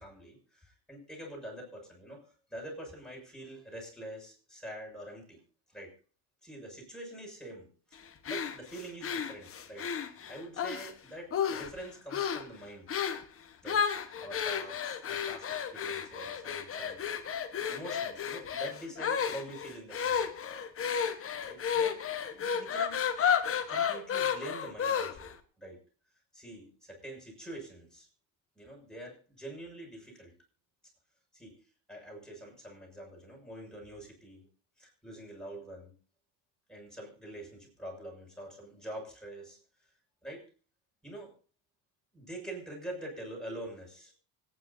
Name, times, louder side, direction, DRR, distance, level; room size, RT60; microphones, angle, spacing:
voice 1, 0.0-5.4 5.7-5.9 6.4-12.9 13.6-17.0 17.7-20.3 21.4-23.0 23.5-25.8 26.3-28.1 28.5-30.3 31.3-31.6 31.9-34.5 34.8-36.0 36.7-39.6 40.2-40.5 41.0-41.3 42.1-44.1, right 1 dB, ahead, -1 dB, 6.4 m, -45 dB
sound 1, 8.2-10.9 11.3-11.8 12.1-12.5 12.9-13.3 13.7-25.3, left 7 dB, 30° left, 1.3 m, -32 dB
25.0 x 9.8 x 2.8 m, 0.38 s
cardioid pair, 135°, 41 cm